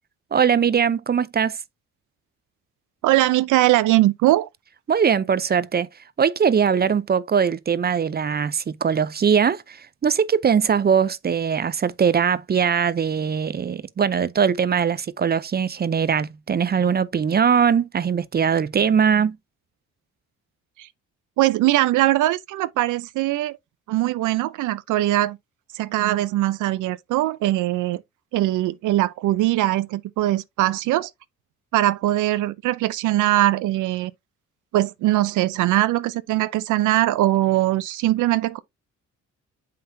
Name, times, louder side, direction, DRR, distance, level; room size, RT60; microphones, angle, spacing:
voice 1, 0.3-1.6 4.9-5.9 6.2-19.4, right 7 dB, 35° right, 0.5 m, -21 dB
voice 2, 3.0-4.5 20.8-20.9 21.4-23.6 23.9-25.4 25.7-28.0 28.3-31.1 31.7-34.1 34.7-38.6, right 15 dB, 80° right, 0.6 m, -21 dB
7.6 x 5.6 x 2.6 m
cardioid pair, 90°, 30 cm